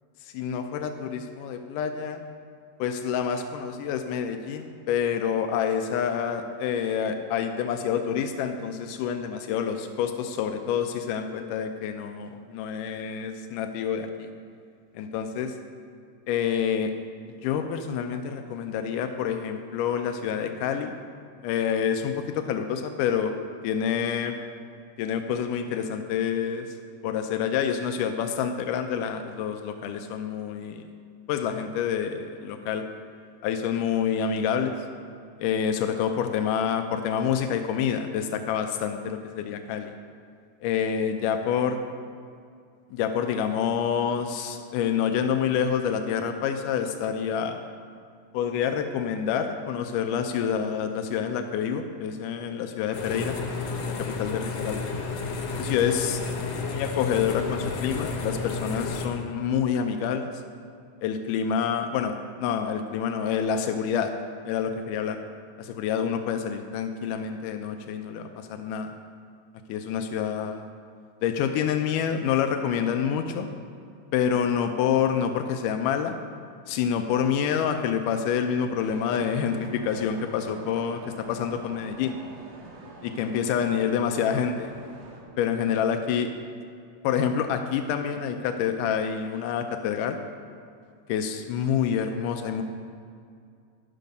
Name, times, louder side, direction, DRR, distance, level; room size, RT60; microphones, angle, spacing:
voice 1, 0.3-2.2 2.8-14.3 15.0-15.6 16.3-16.9 17.4-20.9 21.4-23.3 23.6-24.4 25.0-26.7 27.0-30.8 31.3-32.9 33.4-34.7 35.4-39.9 40.6-41.8 42.9-47.6 48.3-53.4 53.9-54.9 55.6-56.2 56.6-60.3 61.0-64.1 64.5-65.2 65.6-68.9 69.7-70.7 71.2-73.5 74.1-76.2 76.7-82.2 83.0-84.7 85.4-86.3 87.0-90.2 91.1-92.6, left 8 dB, 85° left, 6 dB, 2.1 m, -27 dB
sound 1, 52.9-59.1, left 4 dB, 65° left, 1.8 m, -31 dB
sound 2, 78.7-85.2, right 3 dB, 85° right, 2.9 m, -45 dB
10.0 x 6.7 x 5.2 m, 2.3 s
omnidirectional pair, 3.7 m